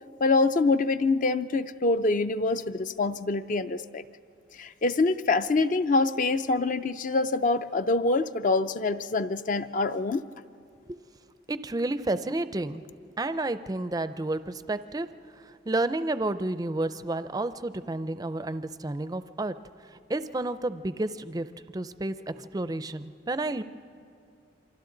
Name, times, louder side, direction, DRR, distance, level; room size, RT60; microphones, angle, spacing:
voice 1, 0.2-4.0 4.6-10.2, left 3 dB, 40° left, 11 dB, 0.4 m, -25 dB
voice 2, 11.5-15.1 15.3-19.6 19.9-23.6, right 2 dB, 20° right, 12 dB, 0.4 m, -31 dB
28.5 x 24.5 x 3.9 m, 2.4 s
head